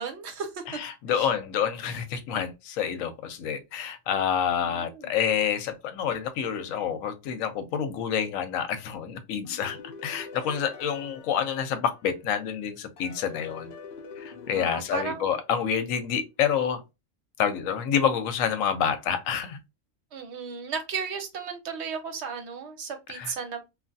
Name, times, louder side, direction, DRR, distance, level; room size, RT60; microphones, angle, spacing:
voice 1, 0.0-0.6 1.2-1.3 4.5-5.1 14.4-15.3 20.1-23.6, right 5 dB, 65° right, 0.8 m, -35 dB
voice 2, 0.7-13.7 14.2-16.8 17.4-19.6 23.1-23.3, left 8 dB, 85° left, 1.0 m, -28 dB
sound 1, 9.4-12.3 13.0-15.8, left 5 dB, 60° left, 0.6 m, -45 dB
3.2 x 2.3 x 2.6 m
omnidirectional pair, 1.3 m